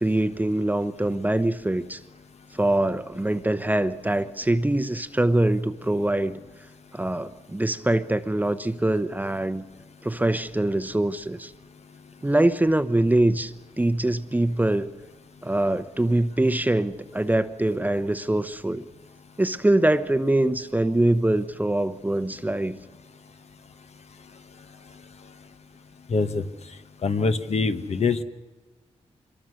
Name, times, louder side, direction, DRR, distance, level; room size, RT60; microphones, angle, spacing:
voice 1, 0.0-2.0 2.5-6.4 6.9-9.6 10.0-11.5 12.2-14.9 15.4-18.9 19.4-22.8, right 1 dB, 15° right, 11 dB, 0.9 m, -23 dB
voice 2, 26.1-26.4 27.0-28.2, left 4 dB, 60° left, 8 dB, 1.4 m, -24 dB
25.5 x 22.5 x 6.5 m, 1.2 s
cardioid pair, 85°, 12 cm